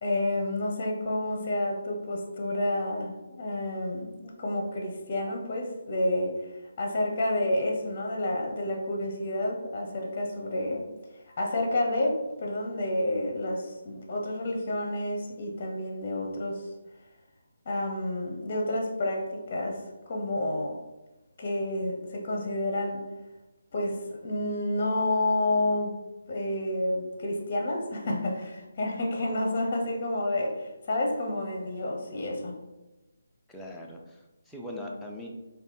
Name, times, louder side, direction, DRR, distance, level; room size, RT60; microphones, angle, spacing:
voice 1, 0.0-6.3 6.8-10.8 11.4-16.7 17.7-19.8 20.1-20.8 21.4-23.0 23.7-26.0 26.3-32.5, left 1 dB, 40° left, 0 dB, 0.7 m, -29 dB
voice 2, 33.5-35.3, left 1 dB, ahead, -3 dB, 0.4 m, -41 dB
3.3 x 2.2 x 4.0 m, 1.0 s
figure-of-eight pair, 155°, 0 cm